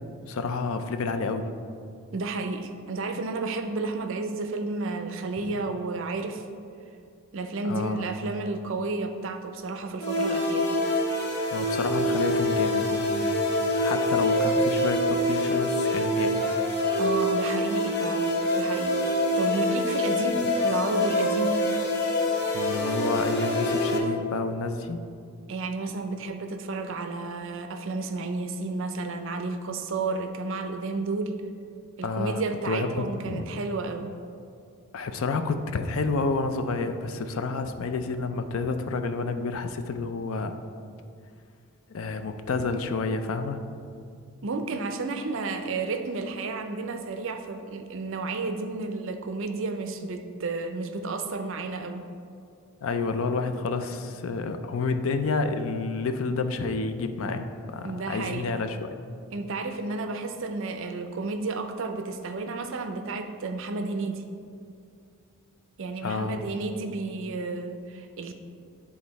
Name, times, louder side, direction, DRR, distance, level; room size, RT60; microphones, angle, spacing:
voice 1, 0.3-1.5 5.4-5.5 7.6-8.0 11.5-13.4 13.8-16.5 22.5-25.0 32.0-33.5 34.9-40.6 41.9-43.6 52.8-58.9 66.0-66.4, left 3 dB, 70° left, 8 dB, 0.4 m, -29 dB
voice 2, 2.1-6.4 7.3-10.7 17.0-18.3 18.6-21.6 25.5-31.4 32.0-34.1 44.4-52.0 57.8-58.5 59.3-64.2 65.8-68.3, right 3 dB, 60° right, 7 dB, 0.5 m, -32 dB
sound 1, 10.0-24.0, left 1 dB, 50° left, 0.8 m, -25 dB
8.9 x 3.6 x 4.1 m, 2.3 s
head